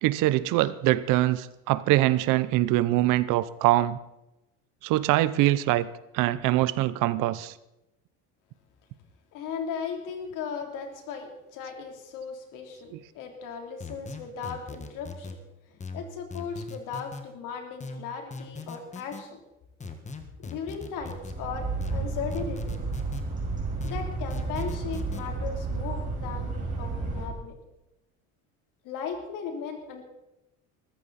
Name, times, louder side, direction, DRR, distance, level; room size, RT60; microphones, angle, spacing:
voice 1, 0.0-4.0 4.8-5.9 6.1-7.5, right 16 dB, 70° right, 17 dB, 0.9 m, -23 dB
voice 2, 9.3-15.4 15.7-19.4 20.4-22.8 23.8-27.5 28.8-30.0, left 6 dB, 70° left, 3 dB, 3.6 m, -37 dB
sound 1, 13.8-15.4 15.8-17.2 17.8-19.2 19.8-21.4 21.8-23.2 23.8-25.2, left 3 dB, 20° left, 1.7 m, -39 dB
sound 2, 20.9-27.3, right 3 dB, 25° right, 5.7 m, -32 dB
21.0 x 14.0 x 4.3 m, 0.92 s
cardioid pair, 120°, 33 cm